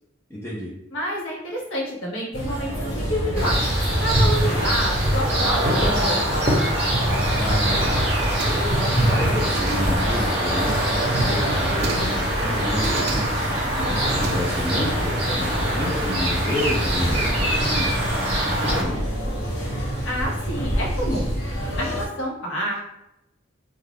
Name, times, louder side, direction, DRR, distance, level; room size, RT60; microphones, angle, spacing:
voice 1, 0.3-0.7 7.3-8.1 8.4-13.2 13.5-18.3 18.7-19.1, left 1 dB, 10° left, -6 dB, 0.5 m, -30 dB
voice 2, 0.9-3.7 4.0-6.9 13.6-14.0 20.0-21.3 21.8-22.8, equal, 80° left, -2 dB, 0.9 m, -28 dB
sound 1, 2.3-22.1, equal, 55° left, 1.4 m, -27 dB
sound 2, 3.3-18.8, right 1 dB, 30° right, 0.7 m, -24 dB
sound 3, 8.0-8.9 9.2-10.1 10.5-11.1 11.5-12.3 12.6-13.5 13.9-14.9, right 5 dB, 55° right, 0.3 m, -36 dB
2.4 x 2.3 x 3.3 m, 0.87 s
head